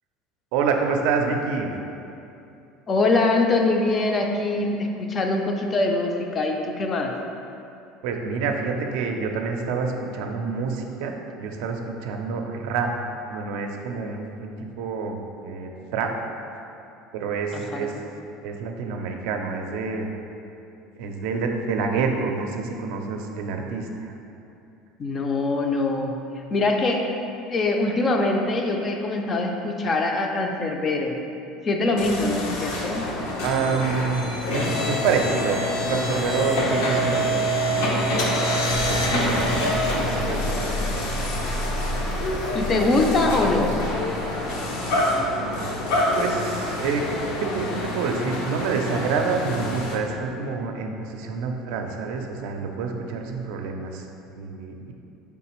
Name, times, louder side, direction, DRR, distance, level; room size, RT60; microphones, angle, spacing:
voice 1, 0.5-1.7 8.0-12.9 13.3-16.1 17.1-17.9 18.4-20.1 21.0-24.1 33.4-35.6 35.9-37.3 37.6-38.0 38.9-39.4 39.7-41.0 44.2-44.5 45.0-45.2 45.5-45.6 46.2-54.1 54.4-54.9, right 5 dB, 75° right, 3 dB, 0.4 m, -28 dB
voice 2, 2.9-7.1 17.5-18.0 25.0-26.2 26.5-27.1 27.3-31.2 31.6-33.1 42.5-43.8, left 2 dB, 25° left, 2 dB, 0.3 m, -23 dB
sound 1, 32.0-50.0, left 1 dB, 85° left, 0.6 m, -26 dB
4.0 x 3.4 x 3.0 m, 2.7 s
cardioid pair, 145°, 0 cm